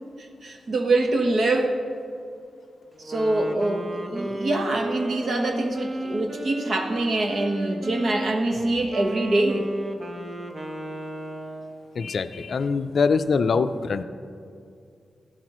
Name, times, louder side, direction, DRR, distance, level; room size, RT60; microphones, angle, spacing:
voice 1, 0.4-1.7 3.0-9.7, right 2 dB, 55° right, 3 dB, 1.1 m, -24 dB
Wind instrument woodwind instrument, 3.0-11.9, right 1 dB, 30° right, 1.0 m, -33 dB
voice 2, 12.0-14.0, left 5 dB, 60° left, 11 dB, 0.4 m, -23 dB
14.5 x 11.5 x 3.0 m, 2.5 s
cardioid pair, 85°, 0 cm